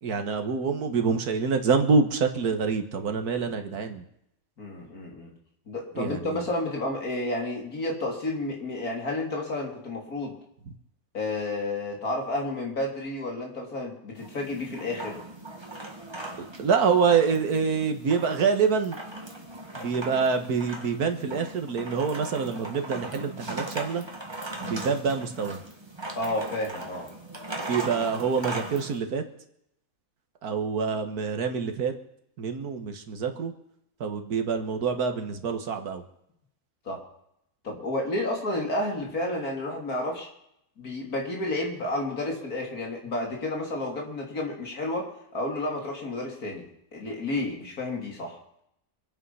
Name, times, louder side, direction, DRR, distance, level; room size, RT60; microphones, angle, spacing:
voice 1, 0.0-4.0 6.0-6.4 16.6-19.0 19.8-24.0 24.6-25.6 27.7-29.2 30.4-31.9 32.4-33.5 34.0-36.0, right 5 dB, 85° right, 6 dB, 1.9 m, -26 dB
voice 2, 4.6-5.3 5.7-10.3 11.1-15.2 26.2-27.1 36.9-37.0 37.6-40.3 40.8-46.7 46.9-48.4, left 2 dB, 75° left, 0 dB, 3.6 m, -31 dB
sound 1, 14.2-29.0, right 2 dB, 20° right, 1.7 m, -39 dB
25.0 x 9.1 x 5.6 m, 0.76 s
omnidirectional pair, 1.6 m